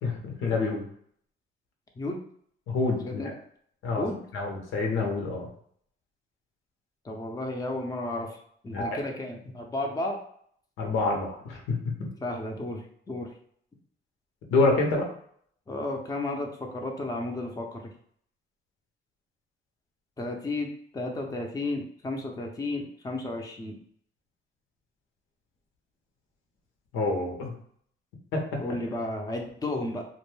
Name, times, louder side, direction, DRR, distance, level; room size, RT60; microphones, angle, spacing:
voice 1, 0.0-0.8 2.7-3.2 3.8-4.0 4.3-5.5 8.7-9.0 10.8-12.1 14.5-15.1 26.9-27.5 28.3-28.4, left 3 dB, 90° left, 1 dB, 0.8 m, -27 dB
voice 2, 7.0-8.4 8.6-10.2 12.2-13.3 15.7-17.8 20.2-23.8 28.6-30.1, left 2 dB, 20° left, 1 dB, 0.5 m, -33 dB
2.5 x 2.2 x 3.1 m, 0.64 s
cardioid pair, 90°, 20 cm